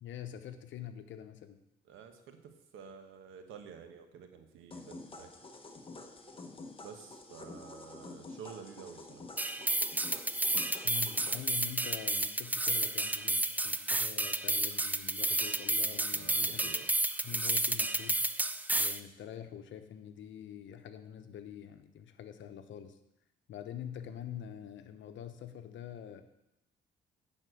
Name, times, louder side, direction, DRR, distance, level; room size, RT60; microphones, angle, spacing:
voice 1, 0.0-1.6 10.8-16.9 17.2-18.2 18.7-23.0 23.5-26.2, left 10 dB, 70° left, 9 dB, 1.0 m, -45 dB
voice 2, 1.9-5.3 6.8-9.2 16.1-16.9, right 7 dB, 85° right, 6 dB, 1.2 m, -50 dB
sound 1, 4.7-11.4, left 3 dB, 25° left, 1.3 m, -49 dB
sound 2, 9.4-19.0, right 2 dB, 10° right, 0.4 m, -31 dB
11.0 x 4.4 x 7.7 m, 0.88 s
cardioid pair, 90°, 20 cm